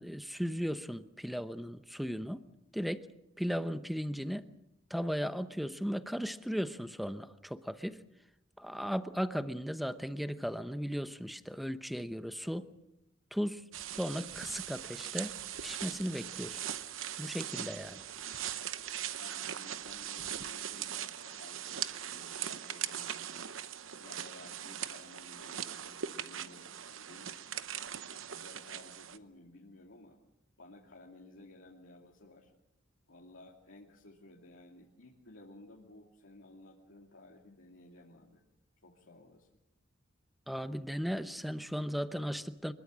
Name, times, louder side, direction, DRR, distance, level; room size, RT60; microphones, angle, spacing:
voice 1, 0.0-2.4 2.7-3.1 3.4-4.5 4.9-8.0 8.6-12.7 13.3-16.6 17.2-18.0 40.5-42.7, equal, ahead, 11 dB, 0.9 m, -36 dB
sound 1, 13.7-29.2, right 10 dB, 80° right, 0.9 m, -40 dB
voice 2, 19.1-23.3 23.9-27.6 28.1-30.2 30.6-32.5 33.1-38.4 38.8-39.5, left 2 dB, 80° left, -2 dB, 2.6 m, -55 dB
24.5 x 22.0 x 6.4 m, 0.85 s
head